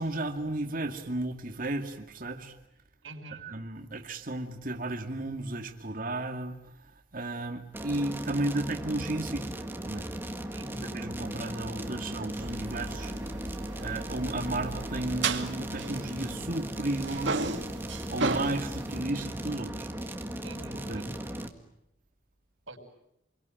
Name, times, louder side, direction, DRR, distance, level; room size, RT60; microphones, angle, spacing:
voice 1, 0.0-2.6 3.4-6.6 6.8-9.5 9.8-10.3 10.8-13.1 13.5-17.6 18.1-19.9 20.9-21.1, right 2 dB, 45° right, 2.3 m, -34 dB
voice 2, 3.0-3.5 10.5-10.9 20.4-21.2 22.7-22.8, right 2 dB, 90° right, 5.7 m, -45 dB
sound 1, 7.7-21.5, right 1 dB, 10° right, 1.8 m, -37 dB
sound 2, 12.4-16.6 16.9-19.0, right 3 dB, 65° right, 2.2 m, -35 dB
28.5 x 23.0 x 9.1 m
head